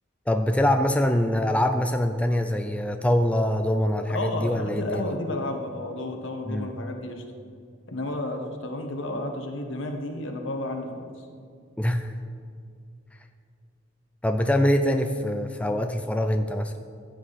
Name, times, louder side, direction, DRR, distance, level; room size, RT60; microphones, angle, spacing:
voice 1, 0.3-5.1 6.5-6.7 11.8-12.1 14.2-16.7, left 1 dB, 5° left, 6 dB, 0.5 m, -24 dB
voice 2, 4.1-7.2 7.9-11.3, left 2 dB, 70° left, 3 dB, 1.6 m, -32 dB
15.5 x 9.9 x 4.2 m, 2.3 s
head